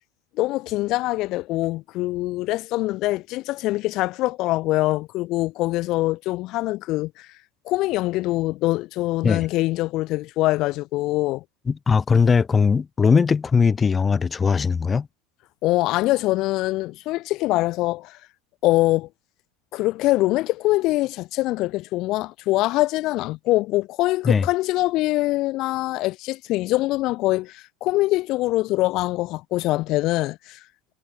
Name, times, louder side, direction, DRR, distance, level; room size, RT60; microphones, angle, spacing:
voice 1, 0.4-7.3 7.6-11.4 15.6-18.2 18.6-19.1 19.7-30.6, left 18 dB, 45° left, 6.4 m, -23 dB
voice 2, 11.7-15.1 24.2-24.4, left 5 dB, 15° left, 6.8 m, -19 dB
supercardioid pair, 155°, 0 cm